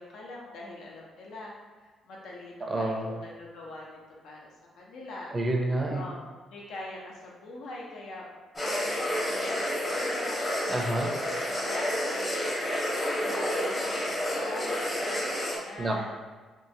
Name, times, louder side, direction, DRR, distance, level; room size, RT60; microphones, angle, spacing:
voice 1, 0.0-1.5 2.0-4.0 4.2-4.4 4.8-5.3 5.9-8.2 8.6-10.4 10.8-16.1, left 2 dB, 80° left, -3 dB, 0.6 m, -43 dB
voice 2, 2.6-3.1 5.3-6.0 10.7-11.1 15.8-16.2, right 2 dB, 30° right, 0 dB, 0.5 m, -28 dB
sound 1, 8.5-15.6, left 1 dB, 20° left, 0.8 m, -30 dB
3.0 x 2.4 x 2.7 m, 1.4 s
cardioid pair, 90°, 0 cm